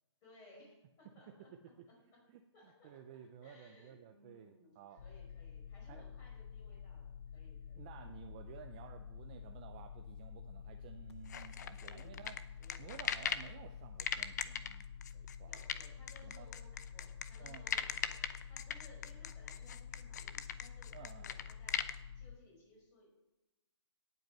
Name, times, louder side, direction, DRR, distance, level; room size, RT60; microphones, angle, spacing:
voice 1, 0.2-1.5 1.9-2.2 2.5-7.9 11.8-12.2 12.6-13.3 15.4-23.2, left 1 dB, 20° left, -2 dB, 5.0 m, -62 dB
voice 2, 2.3-5.0 5.9-6.0 7.8-12.4 12.8-14.9 15.1-15.6 16.2-16.5 17.4-17.7 20.9-21.3, right 9 dB, 15° right, 6 dB, 0.4 m, -54 dB
sound 1, 5.0-22.4, left 8 dB, 65° left, 0.7 m, -50 dB
sound 2, 11.3-13.5 14.0-21.9, left 8 dB, 35° left, 0.7 m, -39 dB
18.0 x 8.1 x 5.4 m, 0.98 s
hypercardioid pair, 160°, 15 cm